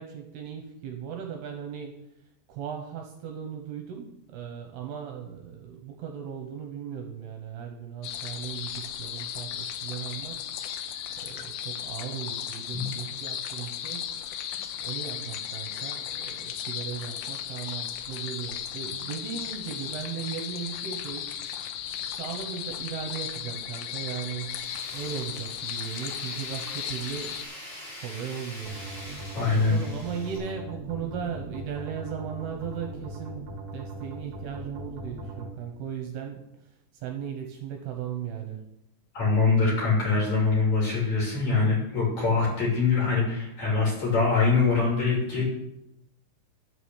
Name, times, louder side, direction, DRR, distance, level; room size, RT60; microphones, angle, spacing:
voice 1, 0.0-2.0 2.5-10.5 11.2-14.1 14.8-21.3 22.2-27.4 28.0-28.8 29.6-33.5 33.7-36.4 36.9-38.7, right 8 dB, 75° right, 3 dB, 2.7 m, -37 dB
sound 1, 8.0-27.5, left 9 dB, 85° left, 2.9 m, -36 dB
Tools, 24.5-30.4, left 1 dB, 60° left, 4.1 m, -43 dB
sound 2, 28.6-35.5, right 2 dB, 55° right, 2.1 m, -39 dB
voice 2, 29.3-29.8 39.1-45.4, left 4 dB, 40° left, -4 dB, 4.0 m, -23 dB
11.0 x 4.8 x 7.0 m, 0.83 s
omnidirectional pair, 5.2 m